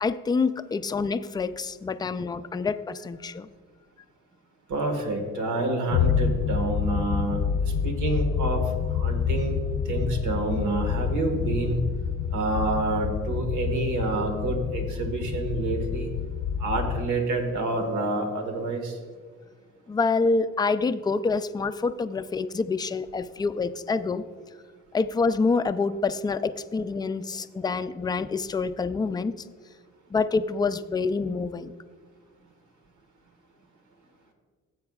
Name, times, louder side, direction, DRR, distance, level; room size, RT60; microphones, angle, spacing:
voice 1, 0.0-3.5 19.9-24.2 24.9-29.3 30.1-31.7, left 4 dB, 15° left, 11 dB, 0.3 m, -27 dB
voice 2, 4.7-8.6 8.9-9.6 9.8-11.8 12.3-16.1 16.6-19.0, right 2 dB, 80° right, 4 dB, 1.6 m, -28 dB
sound 1, 5.9-17.1, left 7 dB, 65° left, 0.5 m, -28 dB
16.0 x 7.9 x 2.4 m, 1.5 s
cardioid pair, 90°, 30 cm